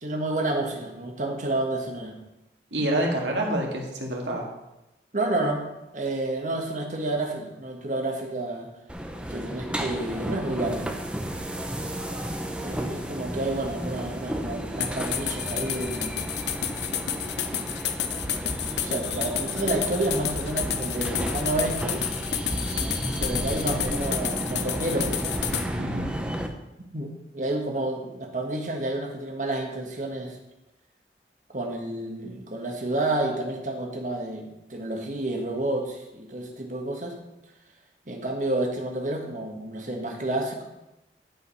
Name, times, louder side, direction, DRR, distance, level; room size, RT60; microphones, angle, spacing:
voice 1, 0.0-2.1 5.1-5.6 5.9-8.7 9.3-10.9 12.6-16.2 18.8-22.0 23.2-25.4 26.8-30.4 31.5-37.1 38.1-40.6, right 2 dB, 45° right, 2 dB, 1.6 m, -30 dB
voice 2, 2.7-4.5 25.8-26.1, right 1 dB, 85° right, 0 dB, 2.1 m, -27 dB
sound 1, 8.9-26.5, equal, 5° right, 0.7 m, -32 dB
sound 2, 14.8-25.7, left 9 dB, 75° left, 0.8 m, -30 dB
11.5 x 5.2 x 5.6 m, 0.93 s
head